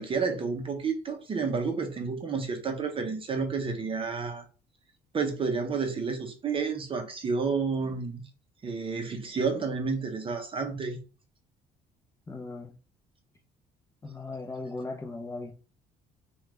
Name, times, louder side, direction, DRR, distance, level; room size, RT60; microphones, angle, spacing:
voice 1, 0.0-4.4 5.1-8.2 8.6-11.0, right 5 dB, 30° right, 0.6 m, -30 dB
voice 2, 12.3-12.7 14.0-15.5, left 3 dB, 15° left, 0.5 m, -37 dB
3.1 x 2.3 x 3.2 m
cardioid pair, 110°, 17 cm